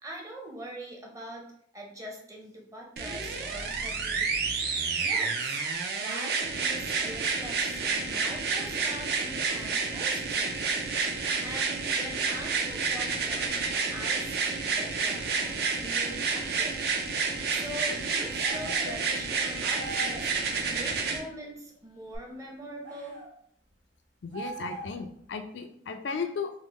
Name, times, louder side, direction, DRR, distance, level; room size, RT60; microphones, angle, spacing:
voice 1, 0.0-4.4 5.0-5.6 6.0-10.6 11.4-13.5 13.9-16.8 17.5-20.3 20.7-23.2, right 1 dB, 20° right, -1 dB, 0.7 m, -43 dB
sound 1, 3.0-21.2 22.1-22.2, right 4 dB, 60° right, 0.5 m, -30 dB
sound 2, 18.4-18.9 19.7-20.3 22.8-23.3 24.3-25.1, right 2 dB, 85° right, 1.0 m, -40 dB
voice 2, 24.2-26.5, left 5 dB, 80° left, 6 dB, 0.4 m, -35 dB
3.6 x 2.0 x 3.1 m, 0.66 s
head